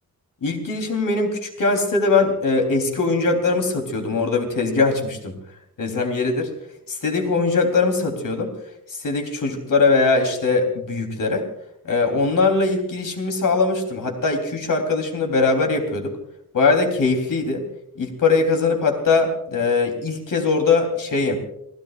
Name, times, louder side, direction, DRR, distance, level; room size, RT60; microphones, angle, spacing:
voice 1, 0.4-5.3 5.8-6.5 6.9-8.5 8.9-11.5 11.8-16.2 16.5-17.6 18.0-21.4, left 3 dB, 65° left, 4 dB, 3.6 m, -21 dB
29.5 x 17.0 x 2.5 m, 0.74 s
wide cardioid pair, 155°, 35 cm